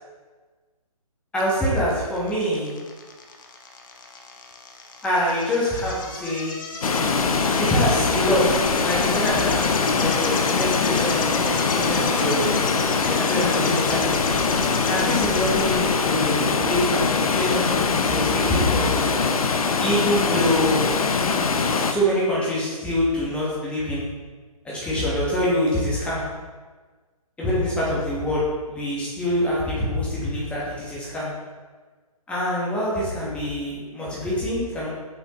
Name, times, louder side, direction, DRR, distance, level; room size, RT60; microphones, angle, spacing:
voice 1, 1.3-2.8 5.0-6.9 7.6-12.5 13.1-14.1 14.9-19.1 19.8-20.9 21.8-24.1 24.6-26.2 27.4-28.4 28.7-31.3 32.3-34.9, equal, 5° left, -7 dB, 1.2 m, -25 dB
sound 1, 1.4-15.7, left 4 dB, 30° left, 0.7 m, -36 dB
Water, 6.8-21.9, left 4 dB, 65° left, 0.6 m, -22 dB
6.6 x 5.5 x 3.0 m, 1.4 s
figure-of-eight pair, 145°, 20 cm